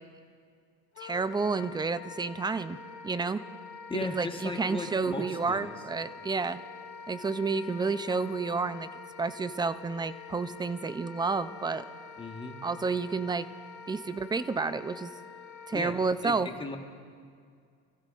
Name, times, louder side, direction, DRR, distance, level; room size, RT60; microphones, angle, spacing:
Wind instrument woodwind instrument, 0.9-16.0, left 5 dB, 65° left, 1.6 m, -46 dB
voice 1, 1.0-2.8 3.0-3.4 3.9-6.6 7.1-8.9 9.2-11.8 12.6-13.5 13.9-15.1 15.7-16.5, right 4 dB, 10° right, 14 dB, 0.4 m, -30 dB
voice 2, 3.9-5.8 12.2-12.6 15.7-16.8, left 3 dB, 15° left, 3 dB, 1.4 m, -37 dB
27.5 x 15.5 x 2.5 m, 2.2 s
supercardioid pair, 95°, 39 cm